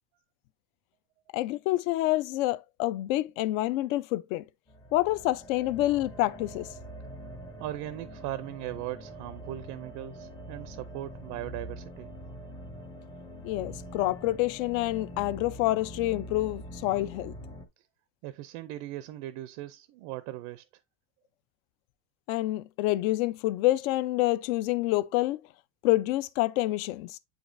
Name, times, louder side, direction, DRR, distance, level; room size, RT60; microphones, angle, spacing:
voice 1, 1.3-4.5 4.9-6.7 13.4-17.3 22.3-25.4 25.8-27.2, left 17 dB, 65° left, 0.6 m, -27 dB
sound 1, 4.7-17.7, equal, 10° left, 0.5 m, -44 dB
voice 2, 7.6-12.1 18.2-20.6, right 14 dB, 50° right, 0.5 m, -38 dB
7.9 x 5.0 x 2.5 m
cardioid pair, 160°, 44 cm